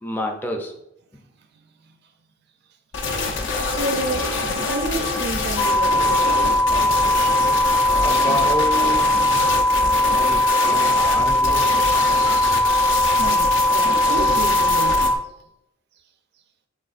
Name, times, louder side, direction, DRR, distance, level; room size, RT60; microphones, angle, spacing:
voice 1, 0.0-0.8 8.0-9.1 9.4-9.7 10.0-12.2, equal, 10° left, 0.4 m, -30 dB
sound 1, 2.9-15.1, left 3 dB, 65° left, 0.7 m, -25 dB
voice 2, 3.6-6.6 7.1-7.5 10.1-10.2 12.0-12.7 13.2-15.1, right 2 dB, 55° right, 0.5 m, -31 dB
sound 2, 5.6-15.2, left 1 dB, 80° left, 1.4 m, -19 dB
6.4 x 3.4 x 2.5 m
head